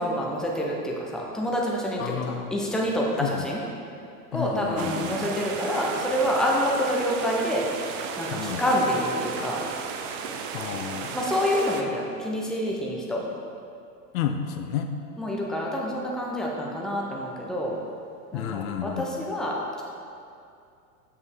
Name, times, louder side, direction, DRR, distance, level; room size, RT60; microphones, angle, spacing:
voice 1, 0.0-3.6 4.3-7.6 8.2-9.6 11.1-13.2 15.2-17.8 18.3-19.8, equal, ahead, -3 dB, 0.7 m, -27 dB
voice 2, 2.0-2.6 3.2-3.5 4.3-5.2 8.3-8.7 10.5-11.2 14.1-14.9 18.3-19.1, left 9 dB, 60° left, 6 dB, 0.5 m, -31 dB
sound 1, 4.8-11.8, right 6 dB, 50° right, 0.6 m, -34 dB
6.5 x 5.2 x 3.6 m, 2.5 s
hypercardioid pair, 100°, 47 cm